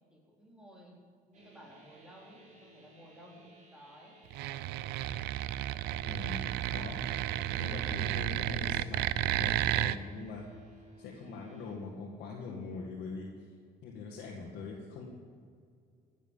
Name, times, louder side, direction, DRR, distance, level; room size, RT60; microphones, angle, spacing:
voice 1, 0.1-4.2, equal, 5° right, -3 dB, 4.1 m, -55 dB
sound 1, 1.3-11.8, right 1 dB, 45° right, 3.9 m, -58 dB
sound 2, 4.3-10.0, right 13 dB, 85° right, 0.5 m, -32 dB
voice 2, 6.0-7.0 7.5-10.5 11.0-13.3 13.8-15.1, left 4 dB, 75° left, -2 dB, 2.0 m, -43 dB
16.0 x 7.5 x 7.3 m, 2.2 s
cardioid pair, 110°, 17 cm